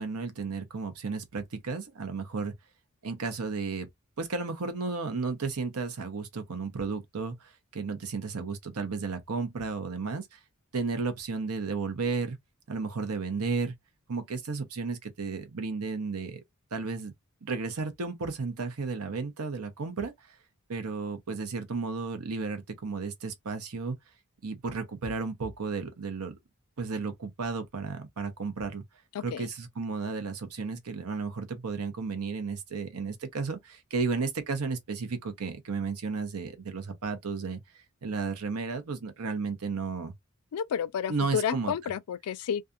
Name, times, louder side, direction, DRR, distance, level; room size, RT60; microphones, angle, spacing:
voice 1, 0.0-2.5 3.0-3.9 4.2-10.4 10.7-12.4 12.7-13.7 14.1-16.4 16.7-17.1 17.4-20.1 20.7-24.0 24.4-26.3 26.8-28.8 29.2-37.6 38.0-40.1 41.1-41.7, right 4 dB, 85° right, 0.8 m, -33 dB
voice 2, 29.1-29.5 40.5-42.6, left 8 dB, 85° left, 0.4 m, -31 dB
2.7 x 2.4 x 2.3 m
head